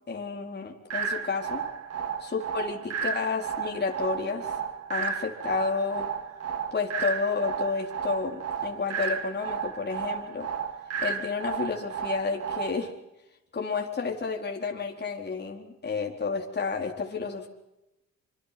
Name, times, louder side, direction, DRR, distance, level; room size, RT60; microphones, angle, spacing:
voice 1, 0.1-1.6 2.3-4.5 4.9-6.1 6.7-10.5 11.0-12.9 13.5-17.5, left 4 dB, 35° left, 1 dB, 4.2 m, -31 dB
sound 1, 0.9-12.9, right 6 dB, 55° right, 2.6 m, -33 dB
26.5 x 26.0 x 6.0 m, 0.92 s
cardioid pair, 90°, 30 cm